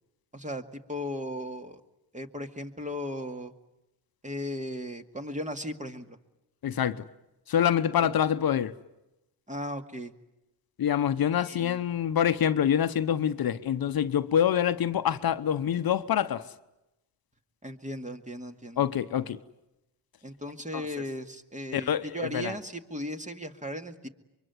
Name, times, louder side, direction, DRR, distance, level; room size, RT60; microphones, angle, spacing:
voice 1, 0.3-1.8 2.1-3.5 4.2-6.2 8.0-8.1 9.5-10.1 11.5-11.8 17.6-18.8 20.2-24.1, equal, 15° right, 2.2 m, -36 dB
voice 2, 6.6-7.0 7.5-8.7 10.8-16.5 18.8-19.4 20.7-20.9 21.7-22.5, left 9 dB, 60° left, 0.9 m, -26 dB
25.0 x 23.0 x 9.6 m
cardioid pair, 60°, 41 cm